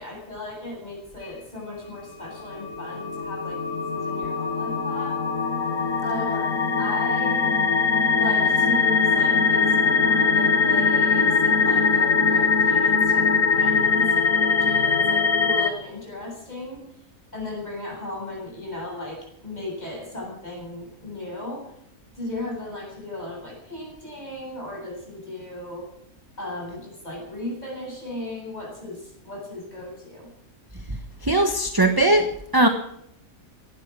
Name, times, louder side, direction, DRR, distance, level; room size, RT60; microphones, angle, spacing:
voice 1, 0.0-5.2 6.0-6.5 6.8-7.6 8.1-16.8 17.3-21.7 22.1-25.9 26.4-30.3, left 2 dB, 30° left, -1 dB, 8.3 m, -36 dB
sound 1, 2.5-15.7, left 5 dB, 60° left, 2.1 m, -21 dB
voice 2, 31.2-32.3 32.5-32.7, right 2 dB, 15° right, 6 dB, 1.2 m, -19 dB
18.0 x 12.5 x 6.2 m, 0.73 s
omnidirectional pair, 1.5 m